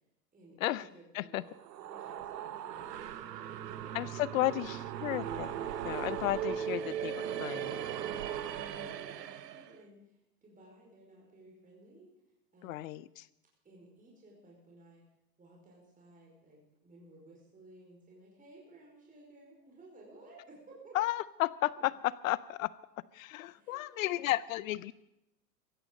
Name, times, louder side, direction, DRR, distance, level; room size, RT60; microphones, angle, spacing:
voice 1, 0.3-4.7 8.5-12.1 12.5-13.0 13.6-15.0 15.4-21.0 21.8-21.9 23.4-24.2, right 1 dB, 15° right, -3 dB, 5.1 m, -57 dB
sound 1, 1.4-9.7, right 9 dB, 70° right, 1.2 m, -38 dB
voice 2, 3.9-7.8 12.6-13.3 20.9-22.7 23.1-24.9, left 16 dB, 55° left, 20 dB, 0.6 m, -33 dB
16.0 x 15.5 x 5.3 m, 0.85 s
hypercardioid pair, 110°, 50 cm